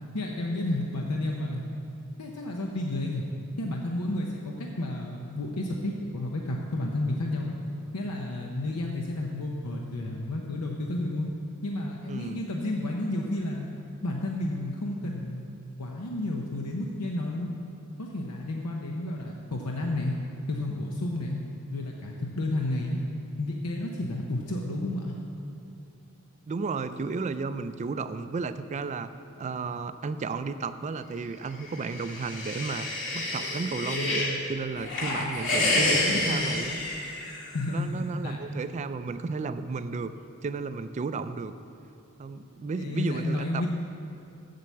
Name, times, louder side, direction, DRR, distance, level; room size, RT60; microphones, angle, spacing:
voice 1, 0.1-1.6 2.2-3.2 3.6-7.6 7.9-11.3 11.6-13.7 14.0-15.5 15.8-17.5 18.0-20.1 20.5-21.4 21.7-23.0 23.4-25.1 35.2-35.3 35.8-36.7 37.5-38.4 42.8-43.7, left 1 dB, 90° left, 0 dB, 0.7 m, -31 dB
voice 2, 12.1-12.4 26.5-29.1 29.4-32.9 33.1-36.8 37.7-40.1 40.4-41.5 42.2-43.6, right 4 dB, 30° right, 11 dB, 0.3 m, -33 dB
sound 1, 31.7-34.4 34.8-37.6, left 2 dB, 60° left, 1.8 m, -29 dB
7.6 x 6.9 x 7.3 m, 2.7 s
head